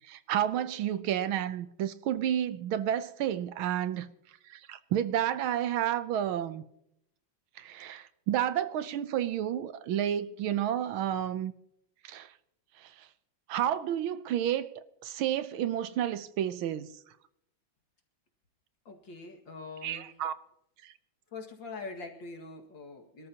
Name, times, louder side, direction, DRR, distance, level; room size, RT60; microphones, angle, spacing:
voice 1, 0.0-4.1 4.5-6.6 7.6-11.5 12.0-12.3 12.8-13.1 13.5-16.9 19.8-20.3 20.8-20.9, right 10 dB, 85° right, 1.6 m, -31 dB
voice 2, 18.9-20.1 21.3-23.3, left 3 dB, 65° left, 2.7 m, -43 dB
26.0 x 13.0 x 2.9 m
omnidirectional pair, 2.2 m